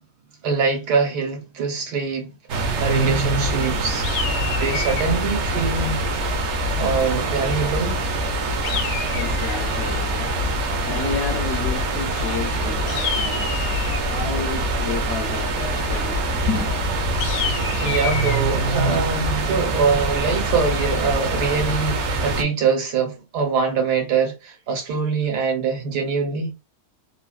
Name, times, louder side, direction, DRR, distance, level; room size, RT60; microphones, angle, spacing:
voice 1, 0.4-2.3 2.6-4.1 4.6-6.0 6.8-8.0 17.5-26.5, right 5 dB, 85° right, 1.5 m, -23 dB
sound 1, 2.5-22.4, right 2 dB, 60° right, 0.7 m, -24 dB
sound 2, 4.0-5.2 8.6-9.7 12.9-14.1 17.2-18.4, left 7 dB, 80° left, 1.1 m, -29 dB
voice 2, 8.5-16.8, left 5 dB, 60° left, 0.7 m, -31 dB
3.3 x 2.2 x 2.3 m
omnidirectional pair, 1.7 m